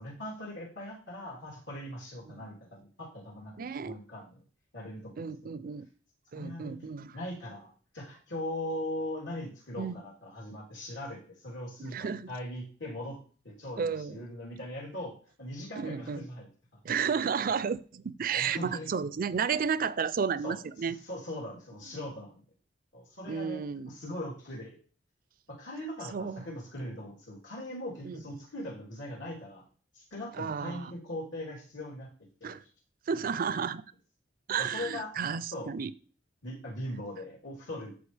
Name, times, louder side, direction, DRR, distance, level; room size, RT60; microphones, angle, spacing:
voice 1, 0.0-4.4 4.7-5.5 6.3-6.8 7.1-13.2 13.4-16.8 18.3-18.9 20.4-20.6 20.8-22.4 22.9-23.6 23.9-24.8 25.5-29.6 29.9-32.1 32.4-32.6 34.6-35.1 35.5-35.7 36.4-37.9, left 1 dB, 85° left, 3.4 m, -40 dB
voice 2, 3.6-4.0 5.2-5.9 6.3-7.1 9.8-10.0 11.8-12.3 13.8-14.2 15.8-16.2 16.8-21.0 23.3-23.9 26.1-26.5 28.1-28.2 30.4-30.9 32.4-32.6 33.1-33.8 34.5-35.9, right 6 dB, 50° right, 0.4 m, -32 dB
13.5 x 4.9 x 3.3 m
head